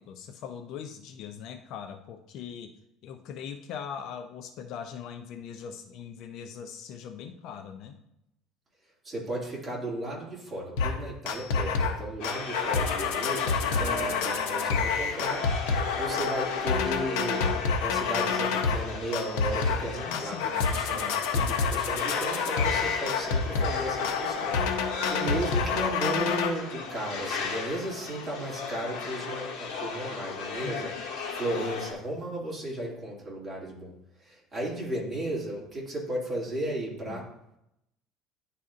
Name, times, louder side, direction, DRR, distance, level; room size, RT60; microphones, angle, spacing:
voice 1, 0.0-2.7 3.0-8.0 13.7-14.9 20.1-20.5 20.8-21.7 30.6-31.0 37.1-37.2, left 7 dB, 55° left, 6 dB, 0.5 m, -41 dB
voice 2, 9.0-15.4 16.0-17.5 17.8-33.9 34.2-37.2, right 1 dB, 15° right, -5 dB, 2.2 m, -35 dB
sound 1, 10.8-11.0 11.3-12.0 12.2-18.8 19.1-19.9 20.1-26.5, left 5 dB, 90° left, 0.7 m, -28 dB
sound 2, 12.2-31.9, left 5 dB, 70° left, 1.5 m, -36 dB
10.5 x 4.1 x 2.5 m, 0.81 s
cardioid pair, 145°, 0 cm